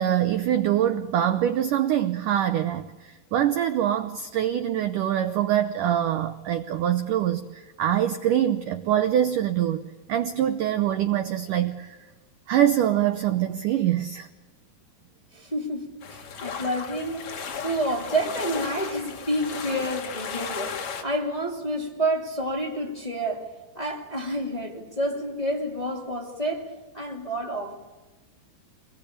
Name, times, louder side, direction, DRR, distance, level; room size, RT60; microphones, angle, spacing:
voice 1, 0.0-12.0 12.5-14.3, right 11 dB, 80° right, 1.8 m, -24 dB
voice 2, 15.3-23.5 23.7-27.7, right 1 dB, 15° left, 1.9 m, -29 dB
sound 1, 16.0-21.0, left 6 dB, 50° left, 2.8 m, -35 dB
27.0 x 21.0 x 8.6 m
omnidirectional pair, 5.0 m